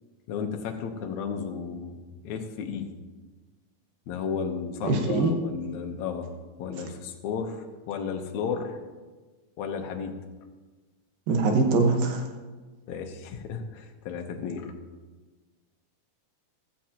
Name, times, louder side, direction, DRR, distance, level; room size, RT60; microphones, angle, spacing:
voice 1, 0.3-2.0 2.2-2.9 4.1-6.3 6.6-8.8 9.6-10.2 12.9-14.7, left 6 dB, 65° left, 4 dB, 2.2 m, -33 dB
voice 2, 4.8-5.3 11.3-12.2, right 3 dB, 85° right, 3 dB, 3.1 m, -23 dB
15.5 x 13.0 x 2.9 m, 1.3 s
omnidirectional pair, 3.9 m